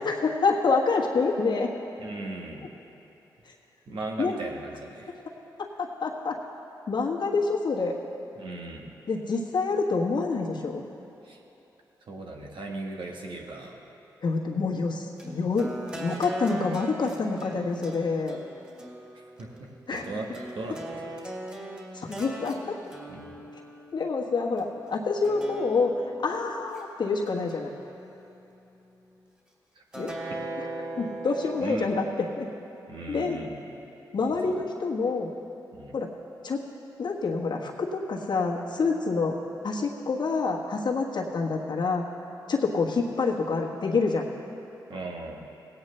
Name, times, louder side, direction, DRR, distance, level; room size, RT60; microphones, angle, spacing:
voice 1, 0.0-1.7 4.2-4.4 5.6-6.4 6.9-7.9 9.1-10.8 14.2-18.4 19.9-20.1 21.9-22.8 23.9-25.9 26.2-27.7 30.0-30.1 30.6-30.7 31.0-32.0 32.4-32.5 33.1-33.4 34.1-35.3 35.9-36.1 36.4-36.6 37.0-39.3 39.6-42.0 42.5-44.3, left 4 dB, 60° left, -1 dB, 1.4 m, -27 dB
voice 2, 2.0-2.7 3.9-5.1 8.4-8.9 11.2-11.4 12.1-13.8 19.4-21.1 23.1-23.3 29.7-29.8 30.3-30.4 31.6-31.9 32.9-33.7 34.4-34.6 35.7-35.9 44.9-45.4, right 2 dB, 70° right, 0 dB, 1.4 m, -38 dB
sound 1, 15.2-24.6 25.2-26.8 27.3-28.4 29.9-31.9, right 1 dB, 15° right, 2.6 m, -40 dB
17.5 x 8.8 x 3.3 m, 3.0 s
supercardioid pair, 45°, 9 cm